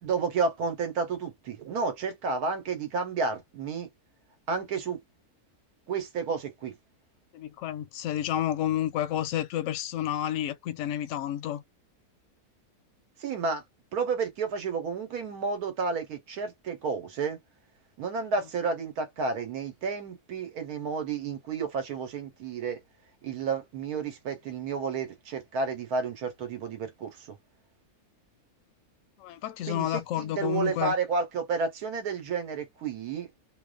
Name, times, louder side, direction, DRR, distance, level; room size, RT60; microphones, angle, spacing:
voice 1, 0.0-3.9 4.5-5.0 5.9-6.8 13.2-13.6 13.9-17.4 18.0-22.8 23.2-27.3 29.7-33.3, right 5 dB, 85° right, 1.4 m, -31 dB
voice 2, 7.3-11.6 29.2-30.9, left 12 dB, 70° left, 0.8 m, -30 dB
2.7 x 2.2 x 2.3 m
omnidirectional pair, 1.6 m